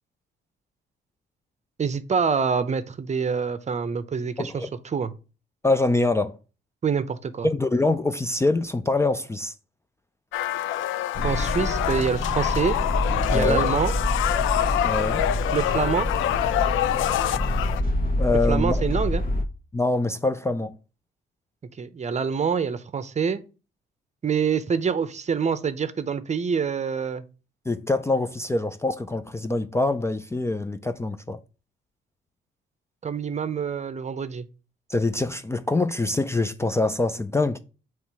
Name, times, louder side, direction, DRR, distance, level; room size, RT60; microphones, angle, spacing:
voice 1, 1.8-5.1 6.8-7.5 11.2-12.8 13.3-13.9 15.5-16.1 18.5-19.2 21.8-23.4 24.2-27.2 33.0-34.5, right 6 dB, 35° right, 0.7 m, -26 dB
voice 2, 4.4-4.7 5.6-6.4 7.4-9.5 13.3-13.6 14.8-15.3 18.2-18.8 19.7-20.8 27.7-31.4 34.9-37.6, left 2 dB, 15° left, 0.4 m, -24 dB
sound 1, 10.3-17.8, left 12 dB, 85° left, 0.5 m, -26 dB
sound 2, 11.1-19.4, left 1 dB, 45° left, 1.3 m, -27 dB
7.2 x 3.2 x 4.7 m
cardioid pair, 90°, 20 cm